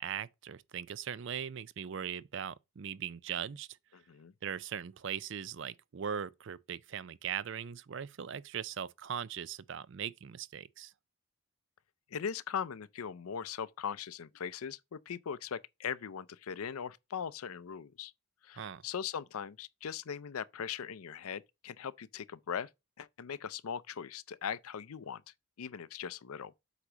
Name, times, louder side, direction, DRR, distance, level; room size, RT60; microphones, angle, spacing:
voice 1, 0.0-3.7 4.4-10.9 18.6-18.8, right 8 dB, 55° right, 0.4 m, -39 dB
voice 2, 3.9-4.3 12.1-18.1 18.4-22.7 23.0-25.2 25.6-26.5, left 7 dB, 85° left, 0.5 m, -40 dB
8.1 x 2.9 x 6.0 m
head